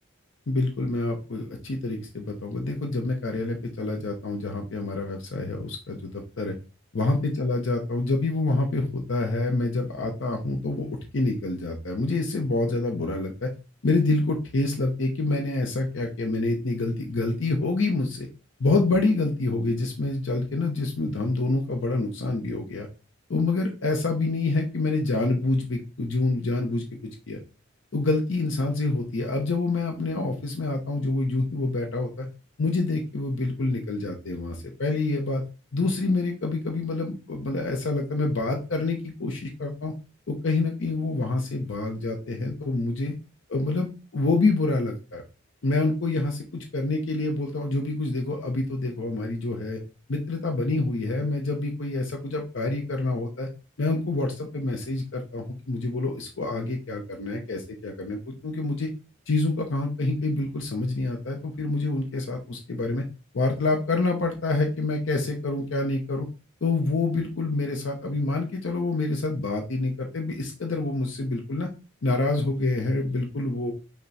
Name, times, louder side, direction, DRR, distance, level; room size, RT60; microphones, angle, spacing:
voice 1, 0.5-6.6 6.9-13.5 13.8-18.3 18.6-22.9 23.3-27.4 27.9-32.3 32.6-35.4 35.7-39.9 40.3-43.2 43.5-45.2 45.6-49.8 50.1-53.5 53.8-58.9 59.3-63.0 63.3-66.3 66.6-71.7 72.0-73.7, left 2 dB, 70° left, 3 dB, 0.7 m, -27 dB
5.5 x 2.2 x 4.0 m, 0.32 s
head